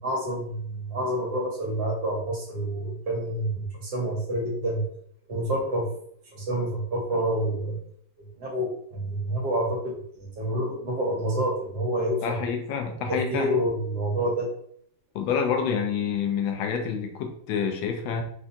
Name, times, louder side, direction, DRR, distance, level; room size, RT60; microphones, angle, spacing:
voice 1, 0.0-4.9 5.3-5.9 6.3-7.8 8.4-12.4 13.1-14.5, right 1 dB, 65° right, -1 dB, 1.2 m, -28 dB
voice 2, 12.2-13.5 15.1-18.2, left 6 dB, 80° left, 3 dB, 1.3 m, -27 dB
3.8 x 2.2 x 2.5 m, 0.64 s
omnidirectional pair, 2.1 m